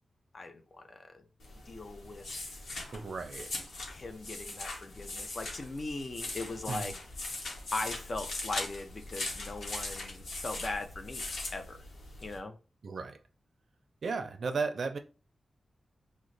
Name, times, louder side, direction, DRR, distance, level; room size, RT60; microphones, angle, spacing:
voice 1, 0.3-1.2 1.7-2.6 3.9-6.9 7.7-11.2 11.5-11.8 12.2-12.6, left 2 dB, 45° left, 0.5 m, -39 dB
sound 1, 1.4-12.4, left 2 dB, 85° left, 1.0 m, -40 dB
voice 2, 2.9-3.5 6.7-6.9 12.8-13.2 14.0-15.0, right 4 dB, 65° right, 0.4 m, -35 dB
3.0 x 2.1 x 3.8 m
wide cardioid pair, 105°, 0 cm